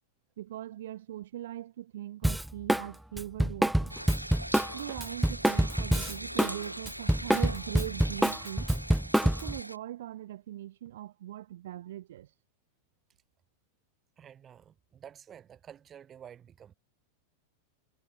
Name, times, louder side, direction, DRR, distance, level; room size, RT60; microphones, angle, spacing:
voice 1, 0.4-4.0 4.7-8.7 9.2-12.3, right 13 dB, 60° right, 2.3 m, -41 dB
Drum kit, 2.2-2.9 3.2-6.6 6.8-9.6, right 1 dB, ahead, 0.7 m, -26 dB
sound 1, 3.9-9.8, equal, 90° right, 1.8 m, -41 dB
voice 2, 14.2-16.7, right 9 dB, 25° right, 7.7 m, -50 dB
figure-of-eight pair, 90°, 0 cm